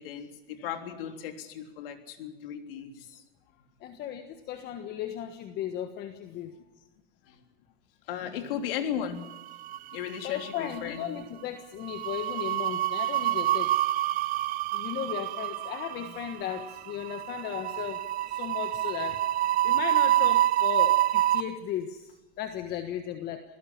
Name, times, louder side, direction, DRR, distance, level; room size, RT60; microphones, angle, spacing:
voice 1, 0.0-3.2 7.3-7.4 8.1-9.3 9.9-11.2 16.0-16.1, left 9 dB, 65° left, 5 dB, 3.5 m, -36 dB
voice 2, 3.8-6.6 8.2-8.3 10.2-13.8 14.7-19.2 19.6-23.4, left 10 dB, 30° left, 8 dB, 1.4 m, -36 dB
sound 1, 9.4-10.2 10.4-10.7 11.9-21.4, right 14 dB, 30° right, 0.6 m, -27 dB
26.5 x 17.5 x 7.3 m, 1.1 s
supercardioid pair, 145°, 30 cm